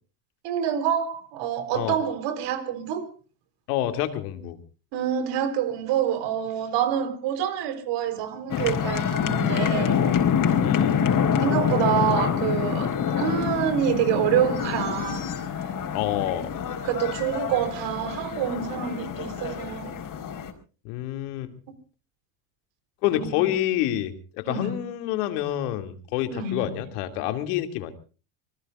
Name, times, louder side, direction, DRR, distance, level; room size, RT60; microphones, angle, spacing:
voice 1, 0.4-3.1 4.9-10.0 11.4-15.3 16.8-20.0 23.1-23.5 24.5-24.8 26.3-26.7, right 9 dB, 60° right, 4.0 m, -27 dB
voice 2, 3.7-4.6 10.6-11.0 15.9-16.5 20.8-21.5 23.0-27.9, left 13 dB, 70° left, 2.5 m, -28 dB
sound 1, 8.5-20.5, left 7 dB, 40° left, 4.4 m, -26 dB
26.0 x 20.0 x 2.5 m
hypercardioid pair, 90°, 47 cm